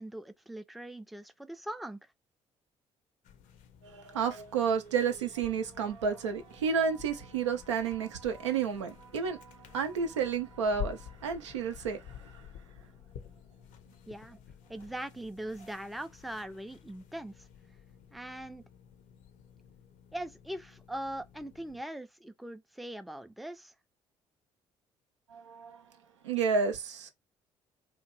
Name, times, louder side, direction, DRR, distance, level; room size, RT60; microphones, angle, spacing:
voice 1, 0.0-2.1 14.1-14.4 14.7-17.5 18.1-18.6 20.1-23.7, right 1 dB, ahead, 0.4 m, -41 dB
sound 1, 3.2-21.8, left 9 dB, 60° left, 0.5 m, -50 dB
voice 2, 3.8-12.5 25.3-25.8 26.2-27.1, right 6 dB, 85° right, 0.5 m, -31 dB
2.8 x 2.2 x 3.0 m
hypercardioid pair, 50°, 15 cm